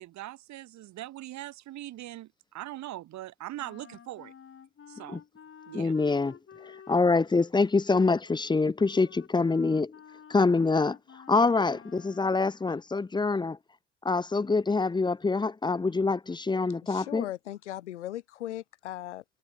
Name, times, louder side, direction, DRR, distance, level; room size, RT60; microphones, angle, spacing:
voice 1, 0.0-4.3 4.9-5.2 5.7-5.9, right 15 dB, 55° right, 2.3 m, -41 dB
Wind instrument woodwind instrument, 3.6-12.6, left 7 dB, 35° left, 7.0 m, -52 dB
voice 2, 5.7-9.9 10.3-11.0 11.3-13.6 14.0-17.2, left 3 dB, 15° left, 0.8 m, -25 dB
voice 3, 16.8-19.2, left 13 dB, 85° left, 1.2 m, -38 dB
hypercardioid pair, 65°, 34 cm